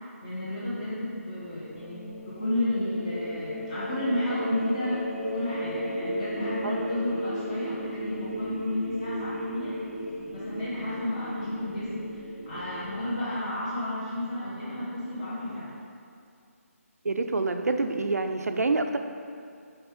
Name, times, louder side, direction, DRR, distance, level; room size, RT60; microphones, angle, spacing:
voice 1, 0.2-9.7 10.3-12.1 12.4-15.7, left 1 dB, 30° left, -11 dB, 1.4 m, -32 dB
sound 1, 1.1-13.1, equal, 10° left, 0.7 m, -35 dB
voice 2, 17.0-19.0, right 3 dB, 85° right, 6 dB, 0.6 m, -27 dB
6.2 x 4.7 x 5.0 m, 2.3 s
hypercardioid pair, 170°, 8 cm